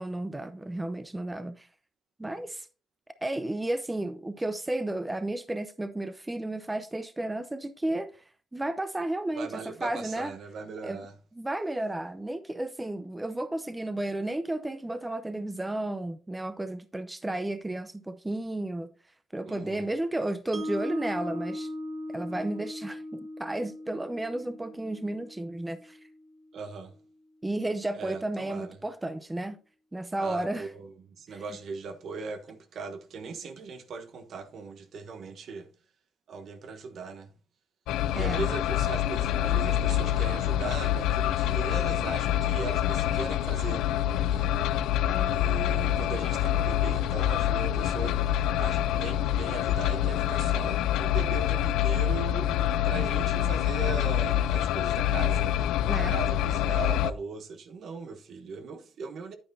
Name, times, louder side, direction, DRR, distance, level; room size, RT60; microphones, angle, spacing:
voice 1, 0.0-1.7 2.2-2.7 3.2-8.1 8.5-10.3 10.8-11.1 11.3-18.9 19.3-21.7 22.1-26.0 27.4-29.6 29.9-30.7 31.3-31.4 38.1-38.5 45.1-45.4 55.9-56.2, right 1 dB, 15° right, 0.6 m, -33 dB
voice 2, 9.4-11.1 19.4-19.9 26.5-26.9 27.9-28.7 30.2-35.7 36.3-37.3 38.1-43.8 44.2-44.5 45.2-59.4, right 4 dB, 60° right, 1.0 m, -39 dB
Mallet percussion, 20.5-26.7, left 1 dB, 40° right, 1.1 m, -39 dB
sound 1, 37.9-57.1, left 11 dB, 90° left, 0.3 m, -26 dB
9.3 x 8.7 x 2.7 m
cardioid pair, 90°, 0 cm